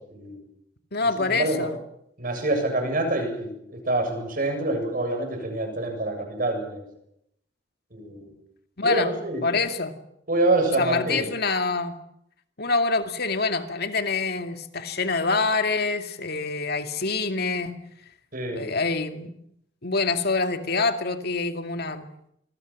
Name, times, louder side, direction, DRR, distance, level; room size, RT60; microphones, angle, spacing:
voice 1, 0.1-0.4 1.0-1.8 2.2-6.8 7.9-8.3 8.8-9.5 10.3-11.2 18.3-18.7, right 2 dB, 50° right, 5 dB, 7.6 m, -26 dB
voice 2, 0.9-1.7 8.8-9.1 9.4-9.9 10.8-12.0 12.6-17.8 18.5-19.3 19.8-22.1, left 3 dB, 60° left, 7 dB, 2.3 m, -26 dB
27.0 x 21.5 x 7.6 m, 0.74 s
head